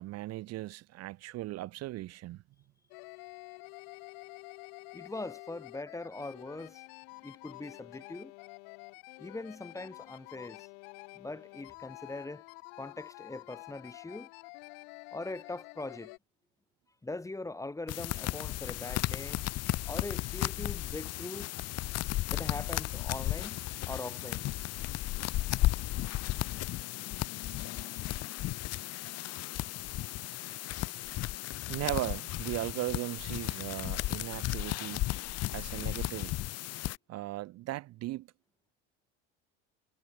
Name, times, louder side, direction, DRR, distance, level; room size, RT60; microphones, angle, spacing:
voice 1, 0.0-2.4 31.7-35.1 35.5-36.3 37.1-38.3, right 17 dB, 55° right, 0.9 m, -37 dB
sound 1, 2.9-16.2, left 40 dB or more, 75° left, 3.5 m, -49 dB
voice 2, 4.9-6.8 7.2-8.3 9.2-10.7 11.1-12.4 12.8-14.3 15.1-16.1 17.0-19.4 19.8-21.5 22.3-23.6 23.8-24.5, left 2 dB, 10° left, 1.1 m, -41 dB
sound 2, 17.9-37.0, left 16 dB, 55° left, 1.1 m, -34 dB
supercardioid pair, 90°, 31 cm